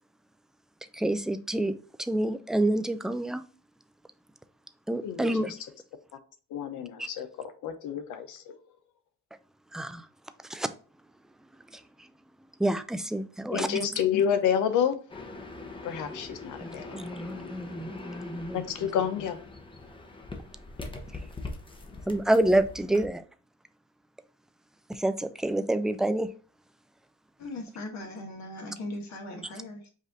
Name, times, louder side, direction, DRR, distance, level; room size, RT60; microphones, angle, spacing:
voice 1, 0.9-3.4 4.9-5.5 7.0-7.1 9.7-10.1 10.5-10.7 11.7-11.8 12.6-13.8 16.6-18.6 21.1-21.2 22.1-23.2 24.9-26.3, right 1 dB, ahead, 0.4 m, -28 dB
voice 2, 5.0-5.5 6.5-8.5 13.5-14.9 15.8-17.0 18.5-19.4, left 8 dB, 85° left, 0.8 m, -29 dB
sound 1, 15.1-23.1, left 2 dB, 15° left, 0.8 m, -42 dB
voice 3, 27.4-29.9, left 1 dB, 65° left, 1.3 m, -39 dB
5.1 x 2.6 x 3.8 m
cardioid pair, 90°, 30 cm